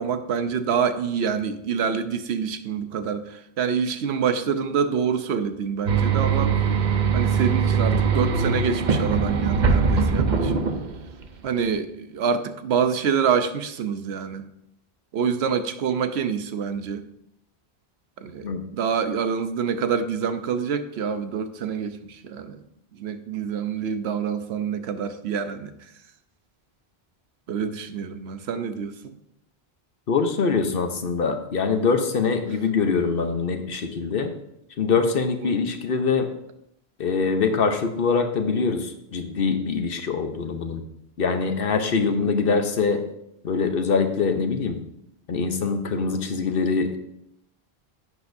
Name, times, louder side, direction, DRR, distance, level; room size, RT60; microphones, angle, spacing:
voice 1, 0.0-6.5 7.1-10.6 11.4-14.5 15.1-17.0 18.2-22.6 22.9-25.9 27.5-29.2 35.4-35.6 42.0-42.3, right 7 dB, 80° right, 9 dB, 1.0 m, -26 dB
sound 1, 5.9-11.2, right 5 dB, 50° right, 0.8 m, -21 dB
voice 2, 30.1-34.3 34.8-36.3 37.0-40.8 41.2-43.0 43.4-44.8 45.3-47.0, left 5 dB, 60° left, 7 dB, 1.0 m, -23 dB
10.5 x 8.3 x 2.6 m, 0.78 s
omnidirectional pair, 1.1 m